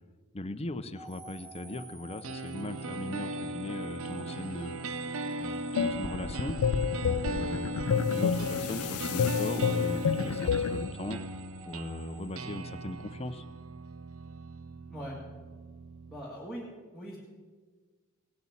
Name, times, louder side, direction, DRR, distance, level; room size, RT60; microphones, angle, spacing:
voice 1, 0.3-4.8 5.4-6.6 7.0-11.2 11.7-13.4, left 1 dB, 25° left, 11 dB, 0.7 m, -39 dB
sound 1, 0.9-13.1, right 2 dB, 30° right, 2.3 m, -51 dB
sound 2, 2.2-16.2, right 2 dB, 65° right, 0.6 m, -38 dB
sound 3, 5.8-10.9, left 6 dB, 80° left, 0.4 m, -29 dB
voice 2, 16.1-17.2, equal, ahead, -5 dB, 1.9 m, -41 dB
17.5 x 8.2 x 7.3 m, 1.4 s
head